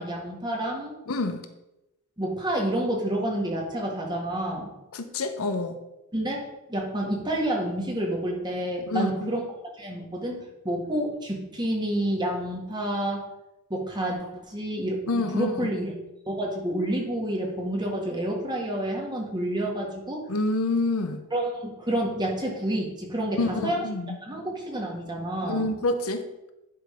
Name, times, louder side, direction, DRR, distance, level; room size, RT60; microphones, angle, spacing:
voice 1, 0.0-0.9 2.2-4.7 6.1-9.4 9.8-13.2 13.7-15.9 16.3-20.2 21.3-23.8 24.2-25.7, right 1 dB, 20° right, -1 dB, 1.7 m, -29 dB
voice 2, 1.1-1.4 4.9-5.8 8.8-9.3 15.1-15.7 20.3-21.2 23.4-24.2 25.4-26.2, left 2 dB, 70° left, 8 dB, 0.8 m, -27 dB
10.5 x 3.9 x 5.0 m, 0.94 s
head